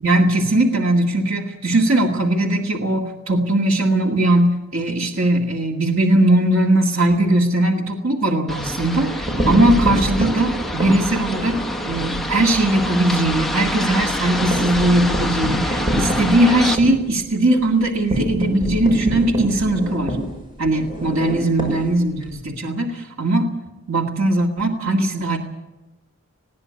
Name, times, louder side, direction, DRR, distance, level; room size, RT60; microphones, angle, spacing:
voice 1, 0.0-11.6 11.8-20.2 20.6-23.5 23.9-25.4, right 1 dB, 85° right, 1 dB, 2.1 m, -19 dB
sound 1, 8.5-16.8, left 1 dB, ahead, 1.0 m, -27 dB
sound 2, 9.1-12.2 12.6-12.8 13.1-13.2 13.5-22.4, right 1 dB, 25° right, 6.0 m, -26 dB
20.5 x 16.0 x 8.6 m, 1.0 s
head